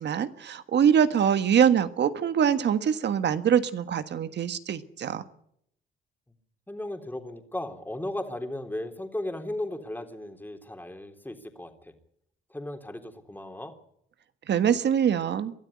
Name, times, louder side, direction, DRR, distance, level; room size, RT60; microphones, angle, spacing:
voice 1, 0.0-5.2 14.5-15.5, right 8 dB, 60° right, 11 dB, 1.5 m, -24 dB
voice 2, 6.7-11.9 12.5-13.7, left 1 dB, 10° left, 5 dB, 3.5 m, -36 dB
22.0 x 13.0 x 9.7 m, 0.72 s
cardioid pair, 90°, 20 cm